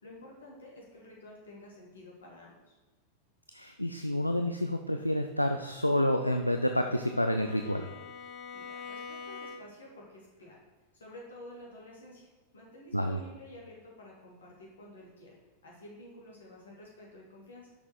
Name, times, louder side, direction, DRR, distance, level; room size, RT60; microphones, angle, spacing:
voice 1, 0.0-2.8 8.5-10.6 10.9-12.3 12.5-15.4 15.6-17.7, left 1 dB, 70° left, -3 dB, 2.4 m, -50 dB
voice 2, 3.5-7.9 12.9-13.2, left 1 dB, 90° left, 6 dB, 0.4 m, -29 dB
Bowed string instrument, 6.1-10.0, left 5 dB, 35° left, 0.8 m, -46 dB
6.2 x 5.9 x 4.9 m, 1.1 s
figure-of-eight pair, 90°, 0 cm